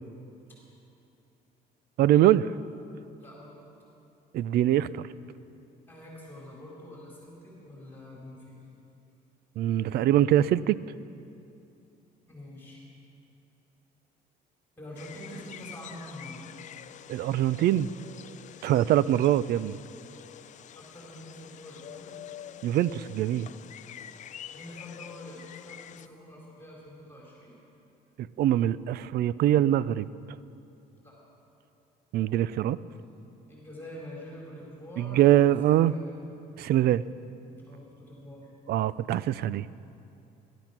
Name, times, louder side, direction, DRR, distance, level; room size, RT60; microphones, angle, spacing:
voice 1, 2.0-2.5 4.3-5.1 9.6-10.8 17.1-17.9 18.6-19.8 22.6-23.5 28.2-30.1 32.1-32.8 35.0-35.9 36.6-37.0 38.7-39.7, right 12 dB, 70° right, 18 dB, 0.5 m, -23 dB
voice 2, 3.2-3.6 5.9-8.6 12.3-12.8 14.8-16.5 20.7-22.1 24.5-27.5 31.0-31.2 33.5-36.0 37.6-38.5, left 1 dB, 10° left, -4 dB, 4.6 m, -45 dB
sound 1, 15.0-26.1, left 10 dB, 45° left, 0.4 m, -47 dB
18.5 x 12.5 x 5.9 m, 2.7 s
cardioid pair, 110°, 17 cm